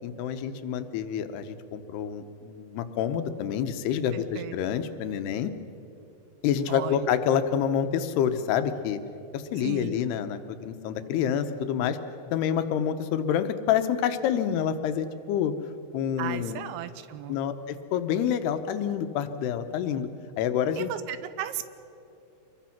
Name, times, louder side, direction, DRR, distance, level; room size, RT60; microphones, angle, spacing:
voice 1, 0.0-5.5 6.4-9.0 9.3-12.0 12.3-15.5 15.9-16.6 17.3-20.1 20.4-20.9, left 9 dB, 80° left, 9 dB, 3.0 m, -27 dB
voice 2, 4.1-4.5 6.7-7.1 9.6-10.0 16.2-17.4 20.8-21.7, right 12 dB, 80° right, 12 dB, 2.5 m, -35 dB
27.0 x 22.0 x 5.9 m, 2.8 s
omnidirectional pair, 4.7 m